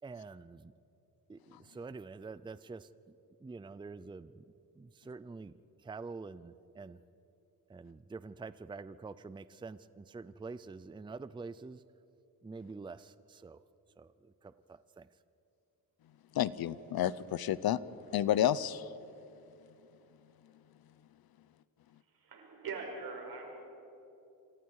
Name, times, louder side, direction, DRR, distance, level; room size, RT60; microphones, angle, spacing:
voice 1, 0.0-0.7 1.3-2.9 3.4-4.4 4.8-5.5 5.8-7.0 7.7-11.8 12.4-13.6 14.0-15.1, right 4 dB, 15° right, 15 dB, 0.5 m, -46 dB
voice 2, 16.3-17.8 18.1-18.9, left 11 dB, 90° left, 17 dB, 0.8 m, -30 dB
voice 3, 22.1-23.6, right 4 dB, 85° right, 1 dB, 5.5 m, -42 dB
27.5 x 27.0 x 4.8 m, 2.9 s
wide cardioid pair, 120°, 35 cm